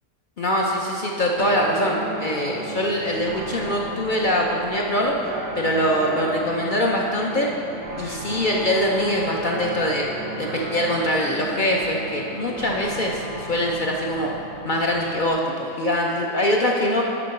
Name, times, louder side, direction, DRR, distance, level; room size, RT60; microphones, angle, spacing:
voice 1, 0.4-7.5 8.0-10.1 10.4-14.3 14.6-17.0, left 1 dB, 60° left, -1 dB, 0.5 m, -23 dB
sound 1, 1.4-15.3, right 2 dB, 20° right, 0.5 m, -34 dB
7.5 x 5.8 x 5.3 m, 2.8 s
omnidirectional pair, 1.6 m